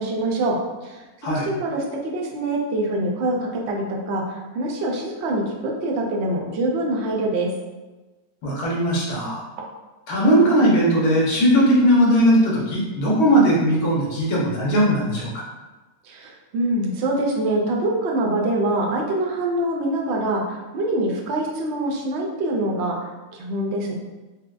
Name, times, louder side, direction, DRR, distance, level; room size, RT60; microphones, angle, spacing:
voice 1, 0.0-7.5 16.0-23.9, right 1 dB, 65° right, 0 dB, 0.7 m, -25 dB
voice 2, 8.4-9.4 10.1-15.4, equal, 75° left, -4 dB, 1.4 m, -18 dB
4.3 x 2.1 x 2.4 m, 1.2 s
omnidirectional pair, 1.6 m